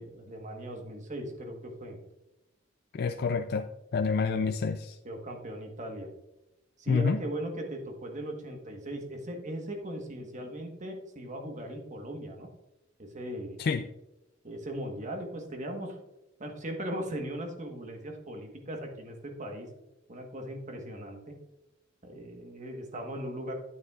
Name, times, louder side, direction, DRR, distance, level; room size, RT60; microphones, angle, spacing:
voice 1, 0.0-2.0 4.1-4.3 5.0-6.1 6.8-12.5 13.0-13.6 14.4-16.0 16.4-19.7 20.1-21.3 22.0-23.5, right 1 dB, 40° right, 3 dB, 1.3 m, -38 dB
voice 2, 2.9-3.7 3.9-5.0 6.9-7.2 13.6-13.9, left 5 dB, 55° left, 7 dB, 0.4 m, -28 dB
9.5 x 8.6 x 2.4 m, 0.95 s
head